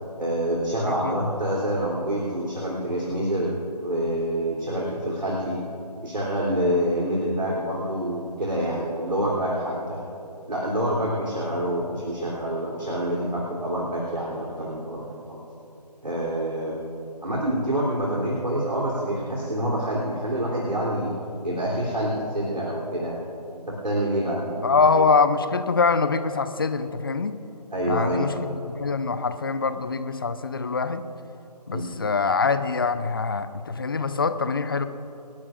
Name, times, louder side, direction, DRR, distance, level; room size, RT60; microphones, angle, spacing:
voice 1, 0.2-5.6 6.0-10.0 10.5-15.0 15.3-15.4 16.0-16.8 17.2-21.1 21.4-23.3 23.5-24.7 27.7-28.4 31.7-31.9, right 1 dB, 85° right, -5 dB, 3.4 m, -27 dB
voice 2, 24.6-27.3 27.9-31.0 31.7-34.8, left 4 dB, 35° left, 11 dB, 0.6 m, -24 dB
28.5 x 11.0 x 2.5 m, 2.8 s
figure-of-eight pair, 160°, 21 cm